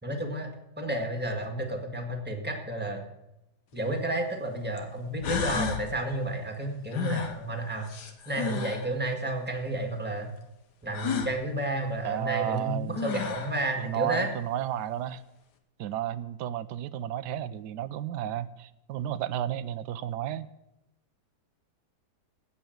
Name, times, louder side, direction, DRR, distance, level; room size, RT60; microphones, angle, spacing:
voice 1, 0.0-0.5 0.8-3.1 3.7-7.9 8.2-10.3 10.8-14.3, right 1 dB, 5° right, 3 dB, 1.7 m, -31 dB
sound 1, 3.7-3.8 4.8-4.9 5.2-5.9 6.9-8.9 10.9-11.3 12.6-12.7 12.9-13.6, left 6 dB, 80° left, 1.7 m, -32 dB
voice 2, 12.0-13.0 13.8-15.2 15.8-20.5, right 11 dB, 80° right, 15 dB, 1.3 m, -32 dB
16.5 x 5.6 x 7.9 m, 0.88 s
omnidirectional pair, 1.8 m